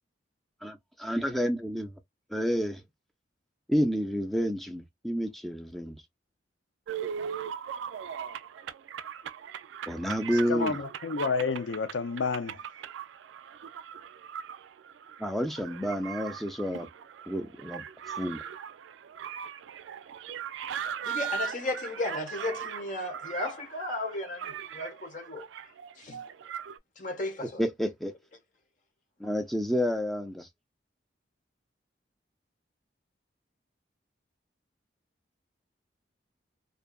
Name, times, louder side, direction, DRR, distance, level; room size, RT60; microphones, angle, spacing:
voice 1, 1.0-2.0 2.3-2.8 3.7-6.0 9.9-10.8 15.2-16.9 17.3-17.8 18.2-18.4 27.6-28.1 29.2-30.5, equal, ahead, 0.4 m, -29 dB
sound 1, 6.9-26.8, right 8 dB, 80° right, 0.3 m, -39 dB
voice 2, 10.5-12.5, left 5 dB, 90° left, 0.5 m, -30 dB
voice 3, 21.1-25.5 26.0-26.2 27.0-27.6, left 2 dB, 45° left, 0.8 m, -34 dB
2.6 x 2.4 x 2.3 m
head